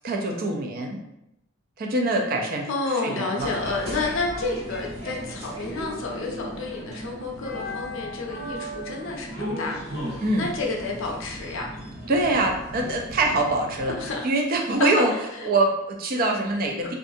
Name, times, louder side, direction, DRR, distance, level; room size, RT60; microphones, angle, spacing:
voice 1, 0.0-1.0 1.8-2.7 3.0-3.5 10.2-10.5 12.1-13.9 14.2-15.1 15.4-16.9, right 2 dB, 40° right, 2 dB, 0.3 m, -24 dB
voice 2, 2.7-11.7 14.0-14.3 14.8-15.5 16.8-16.9, left 3 dB, 60° left, 0 dB, 0.5 m, -30 dB
sound 1, 3.4-14.2, equal, 70° right, 1.4 m, -36 dB
2.5 x 2.3 x 2.6 m, 0.86 s
head